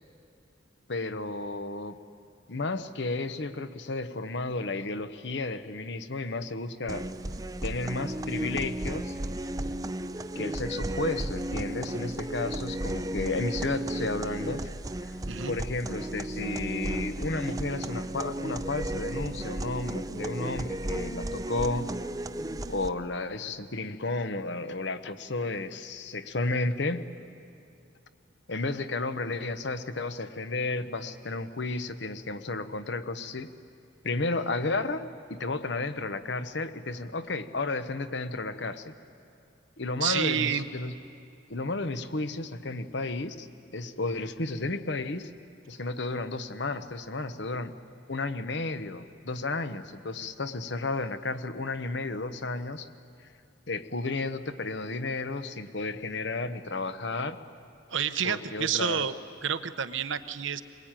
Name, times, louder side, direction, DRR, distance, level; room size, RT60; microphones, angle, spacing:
voice 1, 0.9-2.0 2.5-7.1 7.6-9.1 10.3-14.7 15.1-15.2 15.5-21.9 22.7-27.1 28.5-33.5 34.0-38.9 39.8-40.9 41.5-43.5 43.7-45.3 45.7-47.7 48.1-52.9 53.7-57.4 58.2-59.1, left 3 dB, 65° left, 10 dB, 1.0 m, -32 dB
sound 1, 6.9-22.9, right 1 dB, 20° right, 0.5 m, -34 dB
voice 2, 40.0-40.7 57.9-59.1 59.4-60.6, right 8 dB, 80° right, 11 dB, 0.9 m, -29 dB
23.0 x 21.0 x 9.0 m, 2.5 s
head